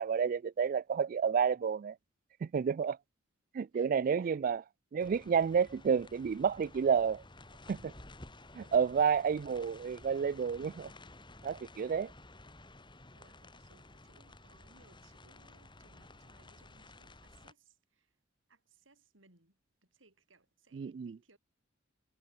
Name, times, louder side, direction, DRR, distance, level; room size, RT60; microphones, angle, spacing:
voice 1, 0.0-2.0 2.4-3.0 3.5-4.6 4.9-7.2 7.7-7.9 8.5-10.9 11.4-12.1 20.7-21.2, right 6 dB, 45° right, 0.3 m, -30 dB
voice 2, 3.7-4.5 8.6-8.9 13.1-18.2 18.5-21.4, right 3 dB, 80° right, 7.8 m, -66 dB
sound 1, 5.0-17.5, left 2 dB, 25° left, 4.6 m, -54 dB
head